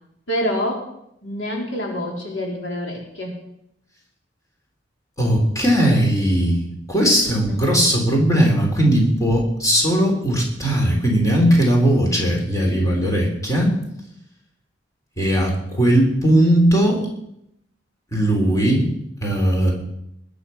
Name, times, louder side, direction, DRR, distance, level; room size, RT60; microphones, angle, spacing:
voice 1, 0.3-0.9 1.2-3.4 7.1-7.6 12.8-13.2, equal, 80° left, 0 dB, 3.8 m, -27 dB
voice 2, 5.2-6.6 6.9-13.7 15.2-17.1 18.1-18.9 19.2-19.7, right 1 dB, 15° left, -1 dB, 3.7 m, -18 dB
20.5 x 8.6 x 5.8 m, 0.77 s
head